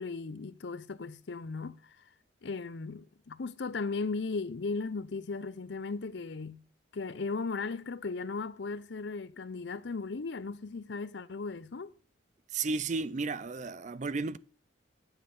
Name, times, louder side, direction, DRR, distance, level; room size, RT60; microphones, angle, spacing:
voice 1, 0.0-2.0 2.4-6.6 6.9-11.9, left 4 dB, 65° left, 0.6 m, -37 dB
voice 2, 12.5-14.4, right 4 dB, 40° right, 0.4 m, -33 dB
9.9 x 7.3 x 5.3 m
head